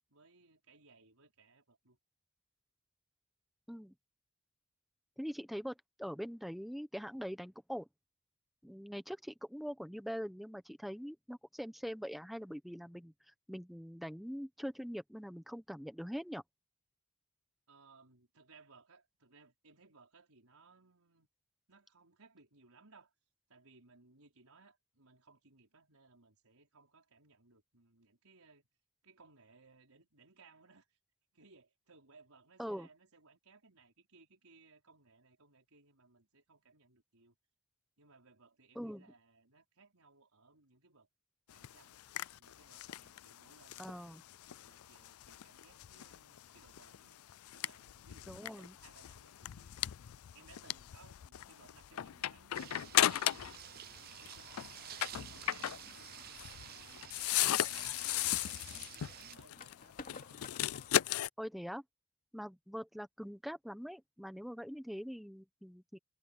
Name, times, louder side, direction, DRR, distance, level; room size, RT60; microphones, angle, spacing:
voice 1, 0.1-2.0 17.7-21.3 21.7-23.1 23.5-28.7 29.0-31.0 31.3-37.4 38.0-41.1 41.5-41.9 42.4-44.1 44.6-47.2 47.5-49.9 50.1-60.5, right 4 dB, 80° right, 5.0 m, -64 dB
voice 2, 5.2-7.9 8.6-16.4 32.6-32.9 38.7-39.1 43.8-44.2 48.3-48.8 61.4-61.8 62.3-66.0, equal, ahead, 1.1 m, -43 dB
sound 1, 41.5-53.6 53.9-61.3, left 13 dB, 75° left, 0.4 m, -37 dB
sound 2, 52.5-59.4, right 11 dB, 45° right, 0.5 m, -51 dB
sound 3, 55.0-61.3, left 3 dB, 40° left, 2.7 m, -57 dB
head